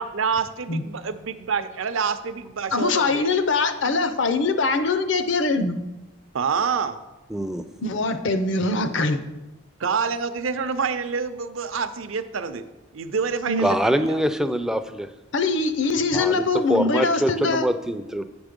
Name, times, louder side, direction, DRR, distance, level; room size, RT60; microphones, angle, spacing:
voice 1, 0.0-3.3 6.3-7.0 9.8-12.6 12.9-14.2, right 5 dB, 75° right, 11 dB, 0.6 m, -27 dB
voice 2, 2.7-5.8 7.8-9.2 13.5-13.7 15.3-17.7, left 3 dB, 60° left, 9 dB, 0.6 m, -23 dB
voice 3, 7.3-7.6 13.6-15.1 16.1-18.2, equal, 5° right, 8 dB, 0.3 m, -24 dB
8.3 x 6.1 x 5.2 m, 1.1 s
head